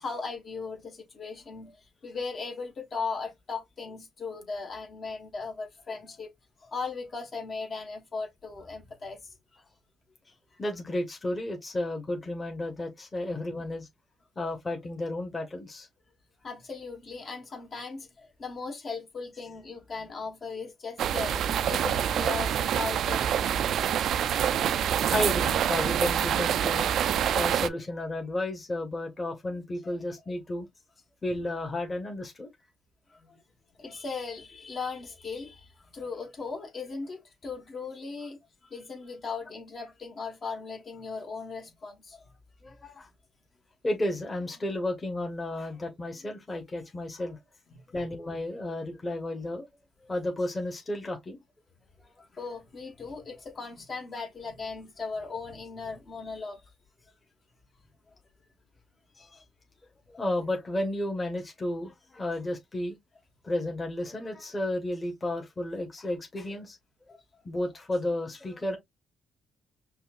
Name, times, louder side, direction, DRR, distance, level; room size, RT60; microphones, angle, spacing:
voice 1, 0.0-6.3 6.6-9.2 10.5-10.6 16.4-21.4 21.7-23.6 33.1-33.4 33.8-42.3 47.7-48.0 52.2-56.6 67.1-67.2, left 4 dB, 45° left, 1.4 m, -38 dB
voice 2, 10.6-13.9 14.4-15.9 23.8-23.9 25.1-30.7 31.2-32.5 42.6-43.1 43.8-47.4 47.9-49.6 50.0-51.4 59.1-59.4 60.2-63.0 63.4-66.8 67.4-68.8, left 1 dB, 25° left, 1.3 m, -32 dB
sound 1, 21.0-27.7, right 9 dB, 70° right, 0.3 m, -26 dB
5.4 x 2.3 x 2.4 m
cardioid pair, 90°, 0 cm